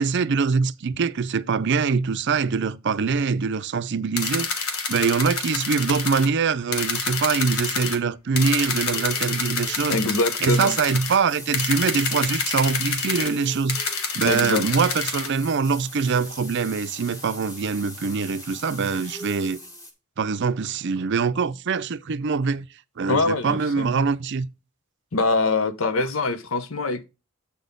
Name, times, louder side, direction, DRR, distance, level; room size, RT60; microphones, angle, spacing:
voice 1, 0.0-10.0 10.4-19.6 20.2-22.7 23.0-24.5, right 5 dB, 55° right, 0.5 m, -24 dB
sound 1, 4.2-6.3 6.7-8.0 8.4-11.2 11.5-13.3 13.7-15.3, left 5 dB, 90° left, 1.6 m, -28 dB
sound 2, 8.8-19.9, left 1 dB, 15° left, 1.6 m, -42 dB
voice 2, 9.9-10.7 14.2-14.6 23.1-23.9 25.1-27.0, left 3 dB, 65° left, 0.9 m, -24 dB
8.3 x 4.1 x 5.2 m
head